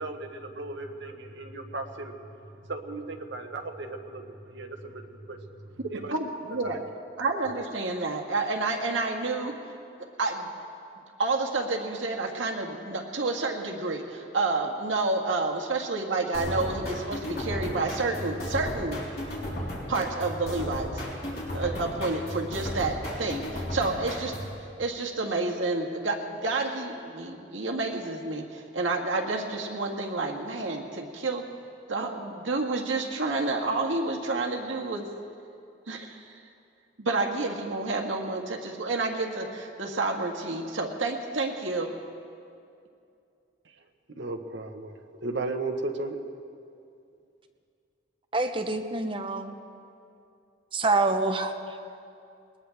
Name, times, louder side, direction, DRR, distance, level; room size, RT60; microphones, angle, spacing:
voice 1, 0.0-6.1 6.6-6.8 43.6-43.8 44.2-46.2, right 2 dB, 70° right, 4 dB, 1.2 m, -36 dB
voice 2, 6.1-6.8 7.2-9.6 10.2-10.5 11.2-19.0 19.9-21.0 21.5-24.3 24.8-31.5 31.9-35.0 35.9-36.4 37.0-41.9, right 3 dB, 85° right, 2 dB, 1.7 m, -29 dB
sound 1, 16.3-24.6, equal, 50° left, 3.9 m, -35 dB
voice 3, 48.3-49.5 50.7-51.5, right 3 dB, 25° right, 6 dB, 0.8 m, -26 dB
21.0 x 19.5 x 3.5 m, 2.5 s
head